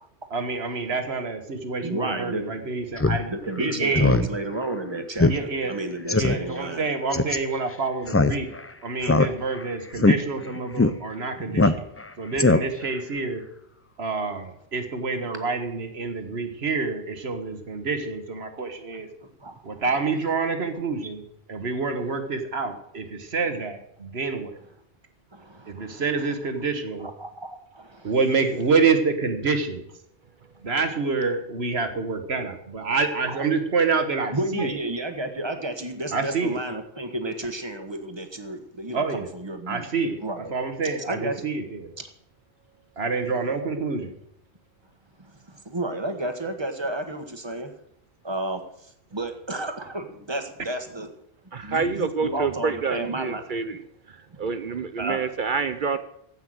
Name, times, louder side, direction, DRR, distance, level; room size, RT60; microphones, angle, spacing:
voice 1, 0.3-3.3 3.6-4.2 5.3-5.8 6.1-8.5 8.8-11.8 12.2-13.4 14.0-19.1 19.6-21.2 21.5-24.6 25.7-27.1 28.0-29.9 30.6-34.8 36.1-36.6 38.9-39.3 39.7-41.9 43.0-44.1, right 4 dB, 70° right, 7 dB, 1.7 m, -27 dB
voice 2, 1.8-2.4 3.3-6.9 11.4-11.7 19.4-19.9 25.3-26.0 27.0-28.1 30.7-30.8 33.3-33.4 34.3-39.9 40.2-40.5 41.1-41.5 42.0-42.1 43.6-43.8 45.2-47.7 48.2-51.1 51.6-53.4 55.0-55.2, right 1 dB, 25° right, 7 dB, 1.4 m, -32 dB
Speech synthesizer, 3.0-3.2 3.6-3.7 3.9-4.3 4.6-4.7 5.2-5.4 5.7-5.8 6.1-6.4 7.1-7.4 8.1-8.6 9.0-9.6 10.0-10.2 10.8-10.9 11.6-12.0 12.4-12.9, left 3 dB, 20° left, 0.4 m, -20 dB
voice 3, 51.5-53.8 54.1-56.0, right 5 dB, 55° right, 11 dB, 0.8 m, -27 dB
15.5 x 5.8 x 7.7 m, 0.75 s
omnidirectional pair, 1.1 m